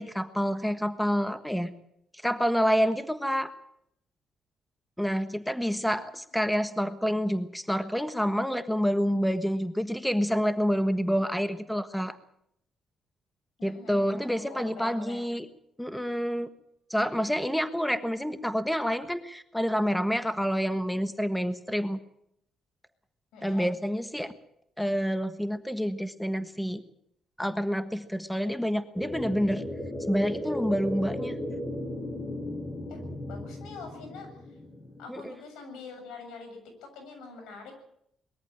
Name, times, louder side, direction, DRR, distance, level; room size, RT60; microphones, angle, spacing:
voice 1, 0.0-1.7 2.2-3.5 5.0-12.2 13.6-15.5 15.8-16.5 16.9-22.0 23.4-24.3 24.8-26.8 27.4-29.7 30.1-31.4 35.1-35.3, equal, 5° left, 10 dB, 1.4 m, -28 dB
voice 2, 13.6-15.3 23.3-23.7 32.9-34.3 35.0-37.7, left 4 dB, 90° left, 5 dB, 7.3 m, -45 dB
sound 1, 28.9-35.0, left 1 dB, 25° left, 8.0 m, -35 dB
22.0 x 14.0 x 9.1 m, 0.75 s
cardioid pair, 90°, 0 cm